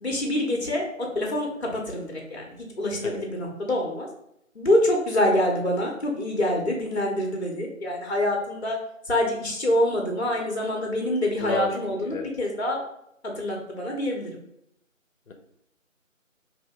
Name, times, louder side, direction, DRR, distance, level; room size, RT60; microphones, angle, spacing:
voice 1, 0.0-4.1 4.5-8.8 9.1-12.8 13.4-14.3, left 1 dB, 55° left, 0 dB, 0.8 m, -26 dB
voice 2, 11.4-12.3 15.3-15.4, left 4 dB, 85° left, 5 dB, 0.7 m, -32 dB
2.8 x 2.6 x 3.3 m, 0.75 s
figure-of-eight pair, 165°, 40 cm